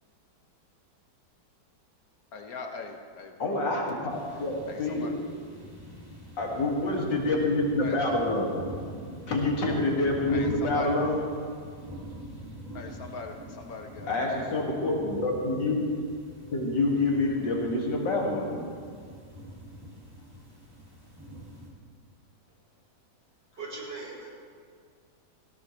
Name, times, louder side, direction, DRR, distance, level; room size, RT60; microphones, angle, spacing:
voice 1, 2.3-3.8 4.7-5.1 7.8-8.0 10.3-10.9 12.7-14.4, left 4 dB, 55° left, 4 dB, 1.6 m, -41 dB
voice 2, 3.4-5.3 6.4-8.6 9.3-11.3 11.6-11.7 14.1-15.9 16.5-18.6, left 2 dB, 85° left, -2 dB, 2.9 m, -27 dB
sound 1, 4.1-21.7, equal, 10° right, 2.3 m, -44 dB
voice 3, 23.6-24.3, right 3 dB, 80° right, -6 dB, 4.4 m, -39 dB
17.0 x 16.5 x 3.2 m, 2.1 s
omnidirectional pair, 1.9 m